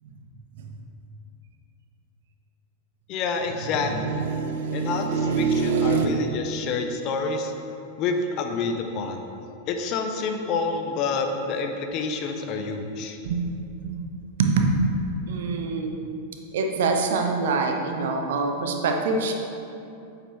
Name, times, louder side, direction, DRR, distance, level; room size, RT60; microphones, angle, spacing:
voice 1, 3.1-3.9 4.7-7.5 8.0-9.2 9.7-13.2, left 4 dB, 40° left, 4 dB, 0.7 m, -28 dB
voice 2, 3.7-6.1 13.2-13.4 13.8-13.9 14.4-15.0 15.3-16.0 16.5-19.3, right 4 dB, 60° right, 3 dB, 0.8 m, -25 dB
8.8 x 6.8 x 3.2 m, 2.7 s
figure-of-eight pair, 90°, 0 cm